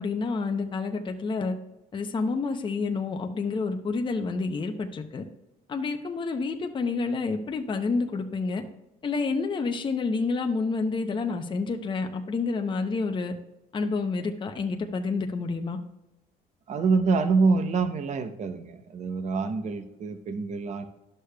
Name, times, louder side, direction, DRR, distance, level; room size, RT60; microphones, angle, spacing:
voice 1, 0.0-1.5 1.9-5.3 5.7-8.6 9.0-13.3 13.7-15.8, left 4 dB, 30° left, 4 dB, 0.7 m, -29 dB
voice 2, 16.7-20.9, right 4 dB, 45° right, 9 dB, 0.7 m, -26 dB
11.0 x 6.6 x 2.3 m, 0.93 s
cardioid pair, 110°, 17 cm